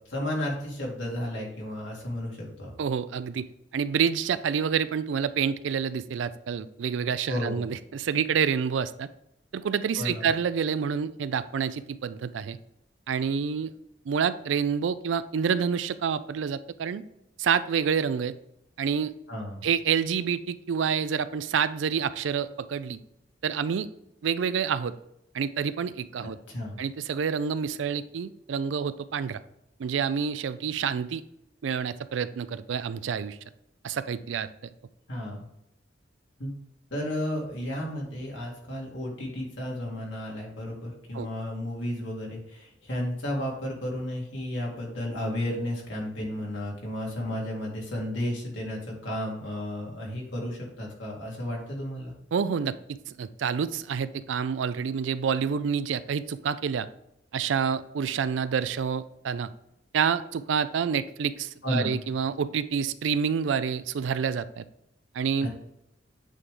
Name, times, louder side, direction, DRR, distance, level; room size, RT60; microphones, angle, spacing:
voice 1, 0.1-2.7 7.3-7.6 10.0-10.3 19.3-19.7 26.5-26.8 35.1-35.4 36.4-36.5 36.9-52.1 61.6-61.9 65.4-65.5, left 1 dB, 85° left, -2 dB, 2.1 m, -33 dB
voice 2, 2.8-3.5 3.7-9.1 9.5-12.6 13.1-13.7 14.1-17.0 17.4-18.3 18.8-19.1 19.6-23.0 23.4-23.9 24.2-24.9 25.3-26.4 26.8-29.4 29.8-31.2 31.6-33.4 33.8-34.5 41.1-41.3 52.3-56.9 57.3-59.5 59.9-64.6 65.1-65.5, right 7 dB, 85° right, 14 dB, 0.4 m, -28 dB
8.3 x 3.3 x 3.7 m, 0.81 s
head